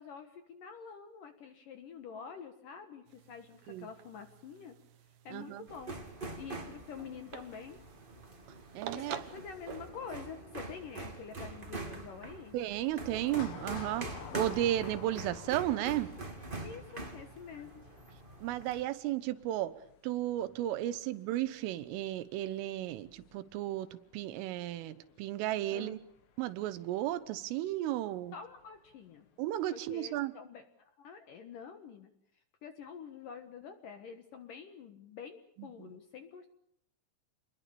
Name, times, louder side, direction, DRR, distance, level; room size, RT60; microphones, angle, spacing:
voice 1, 0.0-4.8 5.2-6.0 6.4-7.8 8.9-12.6 16.6-17.9 25.7-26.0 28.3-29.3 29.7-32.1 32.6-36.5, left 6 dB, 65° left, 8 dB, 2.2 m, -47 dB
sound 1, 3.1-9.9, right 10 dB, 70° right, 2.2 m, -48 dB
voice 2, 5.3-5.7 8.8-9.1 12.5-14.1 14.3-16.1 18.4-19.7 20.0-23.9 24.1-26.0 26.4-28.3 29.4-30.3 35.6-35.9, right 13 dB, 90° right, 14 dB, 3.8 m, -34 dB
sound 2, 5.7-18.8, right 2 dB, 20° right, 1.4 m, -44 dB
sound 3, 13.2-27.2 27.5-27.6 28.6-28.9 29.3-29.4, left 7 dB, 85° left, 5.2 m, -52 dB
28.5 x 21.5 x 6.9 m, 0.72 s
omnidirectional pair, 5.6 m